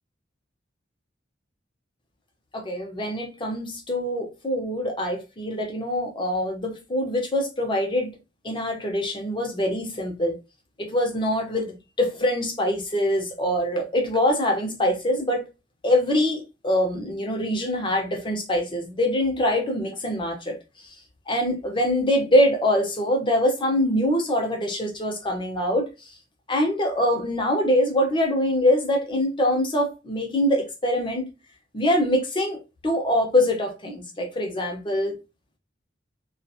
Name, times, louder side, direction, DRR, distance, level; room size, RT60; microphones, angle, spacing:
voice 1, 2.5-8.1 8.4-10.4 10.8-15.5 15.8-20.6 20.8-20.9 21.3-25.9 26.5-31.3 31.7-32.6 32.8-35.2, left 1 dB, 25° left, 0.8 m, -24 dB
2.8 x 2.4 x 2.4 m
head